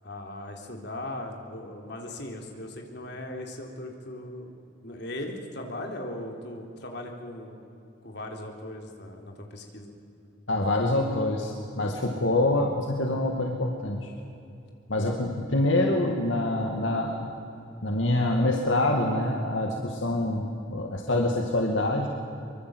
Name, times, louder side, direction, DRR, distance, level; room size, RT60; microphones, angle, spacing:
voice 1, 0.0-4.6 4.8-7.6 8.0-9.9, left 1 dB, 60° left, 2 dB, 3.7 m, -38 dB
voice 2, 10.5-14.1 14.9-17.3 17.8-22.1, left 1 dB, 80° left, 1 dB, 2.3 m, -26 dB
24.0 x 24.0 x 8.0 m, 2.8 s
head